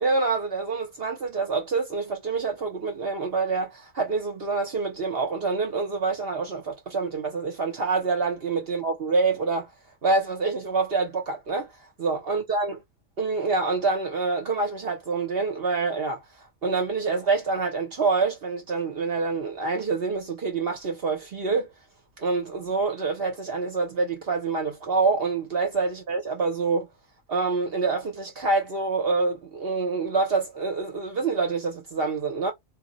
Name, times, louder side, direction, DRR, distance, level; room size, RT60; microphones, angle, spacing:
voice 1, 0.0-9.7 10.0-11.7 12.0-12.8 13.2-16.2 16.6-21.7 22.2-26.9 27.3-32.5, right 4 dB, 55° right, 0.8 m, -26 dB
2.3 x 2.1 x 3.7 m
omnidirectional pair, 1.4 m